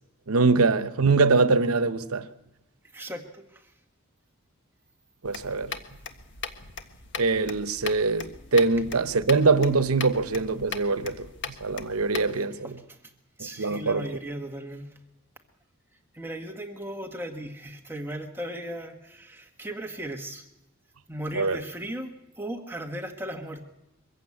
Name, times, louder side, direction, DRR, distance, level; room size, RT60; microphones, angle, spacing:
voice 1, 0.3-2.3 5.2-5.8 7.2-12.8 13.4-14.1 21.3-21.6, right 3 dB, 85° right, 1.0 m, -23 dB
voice 2, 2.9-3.7 12.3-13.0 13.4-14.9 16.1-20.4 21.1-23.6, right 1 dB, 10° right, 1.4 m, -37 dB
sound 1, 5.2-12.3, left 6 dB, 55° left, 1.5 m, -39 dB
23.0 x 15.0 x 8.5 m
head